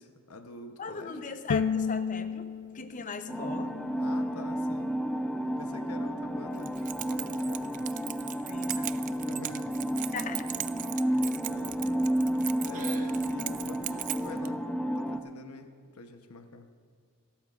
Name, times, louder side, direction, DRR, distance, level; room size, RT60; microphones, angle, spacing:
voice 1, 0.0-1.2 3.8-5.0 5.4-7.8 9.1-9.7 11.0-12.0 12.6-14.7 14.9-16.7, left 3 dB, 75° left, 6 dB, 0.9 m, -46 dB
voice 2, 0.8-2.5 2.7-3.7 8.5-8.9 10.1-10.5, left 4 dB, 35° left, 9 dB, 0.7 m, -38 dB
Bowed string instrument, 1.5-4.7, left 6 dB, 55° left, 0.3 m, -33 dB
sound 1, 3.3-15.2, right 1 dB, 5° left, 0.6 m, -31 dB
Keys jangling, 6.6-14.5, right 13 dB, 35° right, 0.3 m, -39 dB
26.5 x 13.0 x 2.5 m, 2.1 s
head